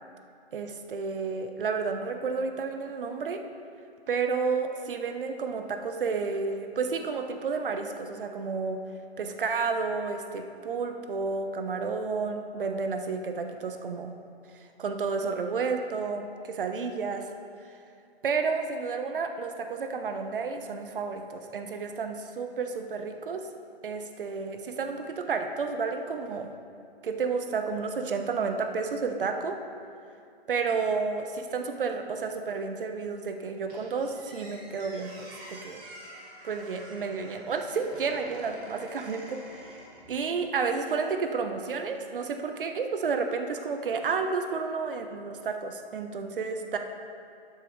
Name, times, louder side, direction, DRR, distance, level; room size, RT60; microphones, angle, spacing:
voice 1, 0.5-3.4 4.1-8.8 9.2-14.1 14.8-17.3 18.2-23.5 23.8-26.5 27.0-29.6 30.5-35.8 36.4-39.8 40.1-46.8, right 5 dB, 55° right, 6 dB, 0.9 m, -31 dB
Squeak, 33.7-40.6, right 1 dB, 25° right, 2.1 m, -48 dB
12.0 x 8.6 x 3.1 m, 2.5 s
hypercardioid pair, 160°, 32 cm